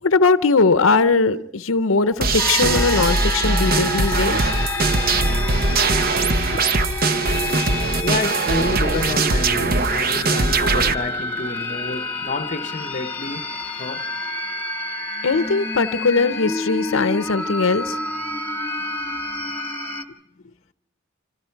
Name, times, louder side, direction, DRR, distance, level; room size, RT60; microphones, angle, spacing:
voice 1, 0.0-4.5 15.2-18.0, left 4 dB, 75° left, 0.7 m, -19 dB
sound 1, 2.2-10.9, right 3 dB, 45° right, 0.9 m, -21 dB
sound 2, 2.4-20.0, left 2 dB, 10° left, 1.8 m, -29 dB
voice 2, 8.0-13.5 13.8-14.1 18.3-18.4 18.6-19.2, left 2 dB, 40° left, 0.8 m, -29 dB
27.0 x 25.5 x 4.6 m
head